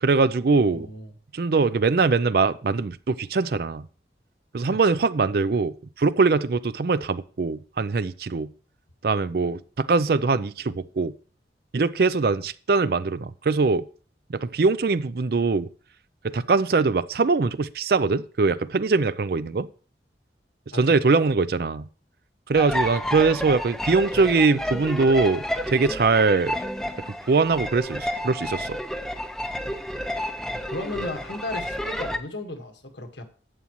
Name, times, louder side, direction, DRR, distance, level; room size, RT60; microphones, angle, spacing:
voice 1, 0.0-0.9 1.3-3.8 4.5-8.5 9.0-11.1 11.7-13.8 14.3-15.7 16.2-19.7 20.8-21.8 22.5-26.6 27.3-28.8, right 4 dB, 55° right, 0.4 m, -22 dB
voice 2, 0.7-1.1 20.7-20.9 30.7-33.2, left 2 dB, 80° left, 1.6 m, -35 dB
sound 1, 22.5-32.2, equal, 5° left, 0.5 m, -30 dB
11.0 x 8.4 x 3.0 m
head